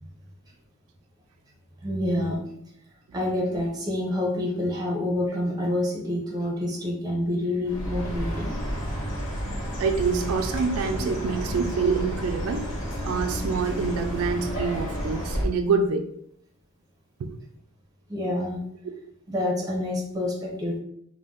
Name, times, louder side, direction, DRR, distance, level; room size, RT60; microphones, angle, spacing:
voice 1, 1.8-2.4 3.1-8.5 11.2-11.3 18.1-18.6 19.3-20.8, left 1 dB, 15° right, -1 dB, 0.6 m, -27 dB
Chirp tweet, 7.7-15.5, equal, 60° left, 1.1 m, -31 dB
voice 2, 9.8-12.7 13.0-16.1 17.2-17.3, right 5 dB, 75° right, 5 dB, 0.3 m, -26 dB
2.5 x 2.1 x 3.6 m, 0.71 s
head